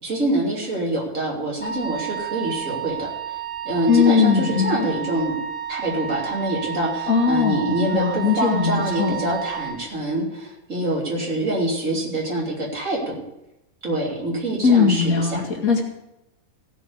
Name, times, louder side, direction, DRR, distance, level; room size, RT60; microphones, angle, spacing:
voice 1, 0.0-3.1 3.6-5.4 5.7-13.2 13.8-15.4, right 1 dB, 65° right, -3 dB, 3.5 m, -25 dB
Wind instrument woodwind instrument, 1.6-9.8, right 9 dB, 10° left, 2.6 m, -31 dB
voice 2, 3.9-4.9 7.1-9.2 14.6-15.8, left 6 dB, 80° left, 0 dB, 2.5 m, -19 dB
16.0 x 5.4 x 7.9 m, 0.87 s
omnidirectional pair, 1.5 m